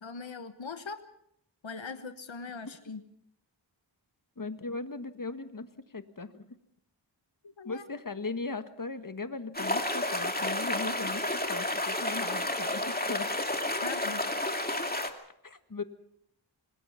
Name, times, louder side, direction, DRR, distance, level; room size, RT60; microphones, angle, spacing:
voice 1, 0.0-1.0 1.6-3.0 7.6-7.8 13.8-14.5, left 4 dB, 85° left, 9 dB, 1.2 m, -41 dB
voice 2, 4.4-5.7 5.9-6.5 7.6-11.2 11.5-13.3 15.4-15.8, left 3 dB, 45° left, 9 dB, 1.7 m, -38 dB
sound 1, 9.5-15.1, left 1 dB, 20° left, 2.4 m, -31 dB
25.5 x 20.0 x 5.8 m, 0.70 s
wide cardioid pair, 45°, 45 cm